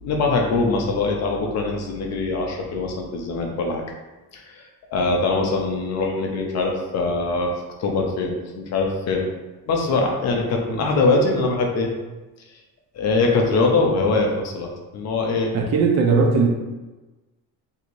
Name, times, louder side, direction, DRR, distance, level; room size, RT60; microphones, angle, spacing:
voice 1, 0.0-3.8 4.3-4.6 4.9-7.5 7.8-9.3 9.7-11.9 12.9-15.5, left 3 dB, 40° left, 1 dB, 0.5 m, -22 dB
voice 2, 15.5-16.5, right 4 dB, 40° right, 2 dB, 0.4 m, -18 dB
4.4 x 2.7 x 2.5 m, 1.2 s
cardioid pair, 175°, 40 cm